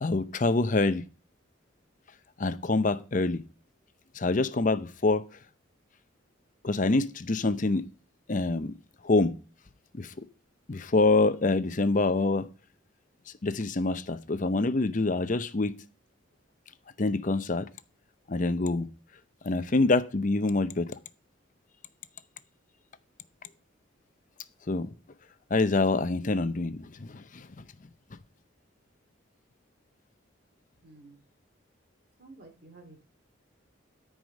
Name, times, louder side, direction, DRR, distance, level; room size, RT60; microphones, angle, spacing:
voice 1, 0.0-1.0 2.4-3.4 4.2-5.2 6.6-7.8 8.3-8.7 9.0-9.3 9.9-10.1 10.7-12.5 13.4-15.7 17.0-17.7 18.3-18.9 19.4-21.0 24.7-24.9 25.5-27.5, left 3 dB, 40° left, 0.6 m, -26 dB
voice 2, 30.8-31.2 32.2-33.1, right 2 dB, 50° right, 2.4 m, -51 dB
13.0 x 4.9 x 5.3 m
head